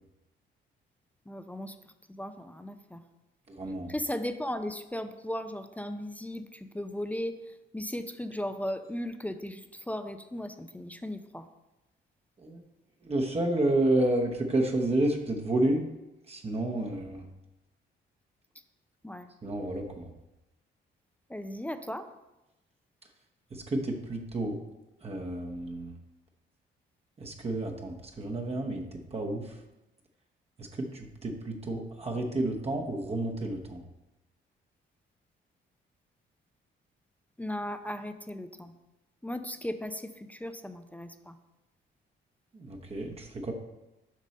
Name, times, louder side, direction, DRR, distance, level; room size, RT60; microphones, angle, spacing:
voice 1, 1.3-1.8 2.1-3.0 3.9-7.4 7.7-11.5 19.0-19.3 21.3-22.1 37.4-38.7 39.2-41.4, left 1 dB, 5° left, 9 dB, 0.5 m, -36 dB
voice 2, 3.5-3.9 12.4-12.6 13.0-15.9 16.3-17.3 19.4-20.1 23.5-24.6 25.0-26.0 27.2-29.6 30.6-33.8 42.5-43.5, right 1 dB, 30° right, 1 dB, 1.0 m, -30 dB
7.4 x 5.3 x 4.1 m, 0.98 s
cardioid pair, 90°, 20 cm